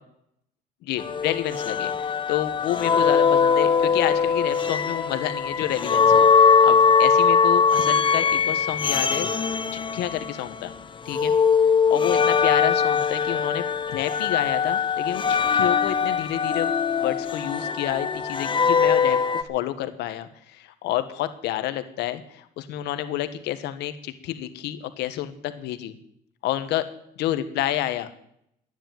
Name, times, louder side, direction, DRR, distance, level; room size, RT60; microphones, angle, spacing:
voice 1, 0.8-9.3 9.9-10.7 11.0-11.3 11.9-16.7 17.0-26.0 26.4-26.8 27.2-28.1, left 13 dB, 85° left, 10 dB, 1.4 m, -29 dB
sound 1, 1.0-10.7 11.1-19.4, left 6 dB, 30° left, 1.1 m, -21 dB
12.5 x 10.0 x 9.2 m, 0.73 s
cardioid pair, 110°, 17 cm